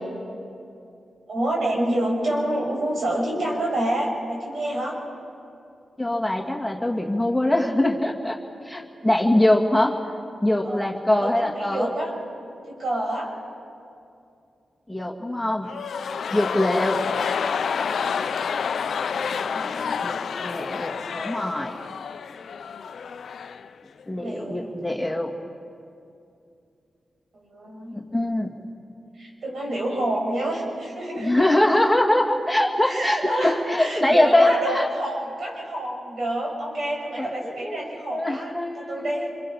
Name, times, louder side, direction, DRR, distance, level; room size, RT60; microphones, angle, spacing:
voice 1, 1.3-5.0 10.6-10.8 11.2-12.1 12.6-13.3 19.2-20.0 24.2-24.7 27.3-28.0 29.2-31.5 32.8-39.3, right 1 dB, 70° right, -1 dB, 6.4 m, -28 dB
voice 2, 6.0-8.4 8.7-10.0 10.4-11.9 14.9-15.7 16.3-17.0 20.0-21.7 24.1-25.3 27.9-28.5 31.2-34.9 37.2-39.3, left 1 dB, 5° left, 1 dB, 2.2 m, -23 dB
sound 1, 15.6-23.7 24.0-24.1, left 6 dB, 75° left, 0.6 m, -29 dB
27.0 x 23.5 x 5.7 m, 2.5 s
cardioid pair, 50°, 0 cm